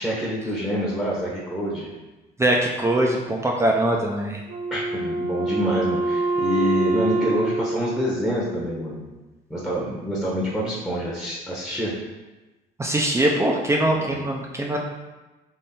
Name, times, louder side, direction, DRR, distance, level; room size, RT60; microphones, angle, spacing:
voice 1, 0.0-1.9 4.7-9.0 9.5-11.9 14.0-14.3, equal, ahead, -6 dB, 0.9 m, -27 dB
voice 2, 2.4-4.4 12.8-14.8, right 1 dB, 15° right, -1 dB, 0.5 m, -22 dB
Wind instrument woodwind instrument, 4.5-9.0, right 2 dB, 75° right, 0.8 m, -26 dB
3.7 x 3.2 x 4.2 m, 1.1 s
cardioid pair, 110°, 17 cm